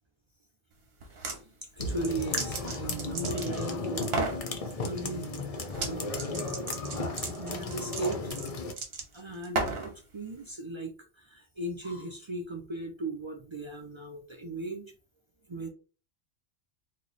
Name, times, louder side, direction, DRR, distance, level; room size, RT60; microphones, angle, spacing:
sound 1, 1.0-1.4 1.8-3.7 4.0-4.4 5.7-5.9 6.2-9.9, right 3 dB, 65° right, 1.1 m, -34 dB
voice 1, 1.2-4.3 4.8-5.3 5.8-6.2 7.4-8.3 9.1-14.9 15.5-15.7, right 2 dB, 40° right, 2 dB, 0.4 m, -37 dB
sound 2, 1.8-8.7, left 3 dB, 45° left, 0.5 m, -34 dB
3.1 x 2.2 x 3.9 m, 0.35 s
omnidirectional pair, 1.2 m